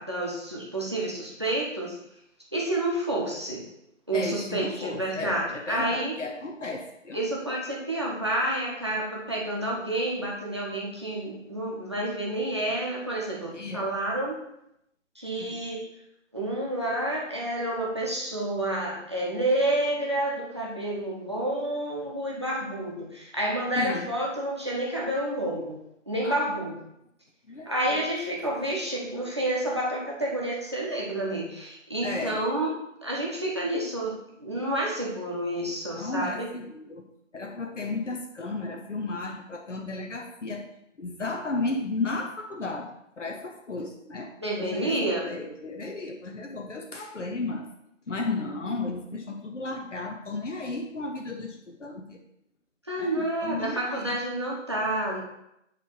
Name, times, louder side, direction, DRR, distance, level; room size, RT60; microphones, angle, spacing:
voice 1, 0.0-2.0 2.5-3.6 4.1-6.1 7.1-14.4 15.2-15.8 16.3-25.8 26.1-26.7 27.7-32.7 33.0-36.5 44.4-45.2 52.9-55.2, right 1 dB, 20° right, -3 dB, 0.9 m, -29 dB
voice 2, 4.1-7.2 13.5-13.9 15.4-15.6 23.8-24.1 26.2-26.4 27.5-28.0 32.0-32.4 36.0-37.0 37.3-40.7 41.0-44.3 44.6-47.6 48.1-52.2 53.0-54.2, left 3 dB, 65° left, 2 dB, 0.9 m, -34 dB
9.8 x 3.3 x 3.9 m, 0.81 s
figure-of-eight pair, 165°, 39 cm